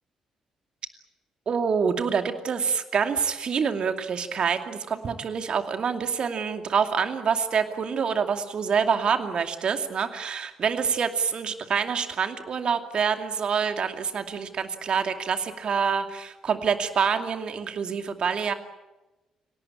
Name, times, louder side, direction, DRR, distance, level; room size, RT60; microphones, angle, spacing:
voice 1, 1.5-18.5, right 6 dB, 50° right, 7 dB, 2.5 m, -26 dB
29.0 x 18.5 x 8.7 m, 1.1 s
figure-of-eight pair, 40°, 2 cm